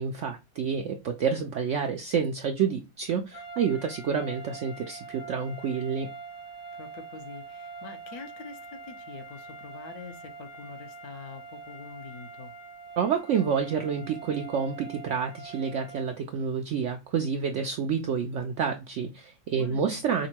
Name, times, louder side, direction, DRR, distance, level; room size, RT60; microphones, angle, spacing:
voice 1, 0.0-6.1 13.0-20.3, right 6 dB, 75° right, 0.7 m, -29 dB
sound 1, 3.3-16.2, right 4 dB, 40° left, 0.8 m, -44 dB
voice 2, 6.8-12.5 19.5-20.0, left 5 dB, 70° left, 1.2 m, -45 dB
5.1 x 2.1 x 2.8 m
omnidirectional pair, 1.7 m